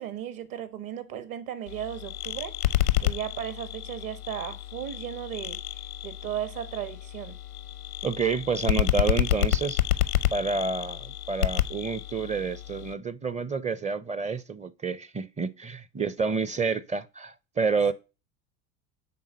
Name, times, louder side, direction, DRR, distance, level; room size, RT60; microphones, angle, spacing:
voice 1, 0.0-2.6 3.0-5.6 6.0-7.4, right 10 dB, 50° right, 1.5 m, -35 dB
sound 1, 1.7-12.9, left 13 dB, 90° left, 0.7 m, -29 dB
voice 2, 8.0-9.8 10.3-17.9, right 5 dB, 15° right, 0.6 m, -29 dB
9.3 x 3.8 x 6.3 m
hypercardioid pair, 70°, 43 cm